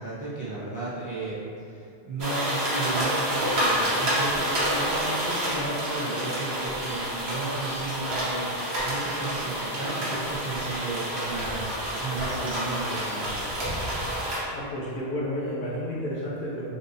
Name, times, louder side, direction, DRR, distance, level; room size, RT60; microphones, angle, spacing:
voice 1, 0.0-13.4, right 2 dB, 25° right, -10 dB, 0.4 m, -34 dB
sound 1, 2.2-14.4, right 1 dB, 70° right, 1.1 m, -28 dB
voice 2, 14.5-16.7, equal, 55° left, -5 dB, 0.7 m, -31 dB
3.9 x 2.6 x 2.6 m, 2.4 s
omnidirectional pair, 1.1 m